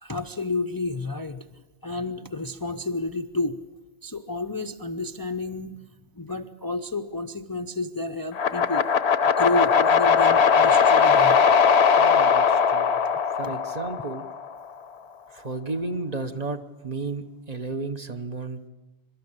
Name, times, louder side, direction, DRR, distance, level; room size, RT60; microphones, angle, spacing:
voice 1, 0.0-1.6 1.8-3.6 4.0-5.8 6.2-8.9 9.4-11.4 13.4-13.5, left 2 dB, 25° left, 7 dB, 0.6 m, -30 dB
sound 1, 8.3-14.5, left 6 dB, 75° left, 1.1 m, -19 dB
voice 2, 12.0-13.0 13.3-14.3 15.3-18.7, right 3 dB, 40° right, 7 dB, 1.0 m, -33 dB
24.0 x 12.5 x 8.7 m, 1.1 s
omnidirectional pair, 1.1 m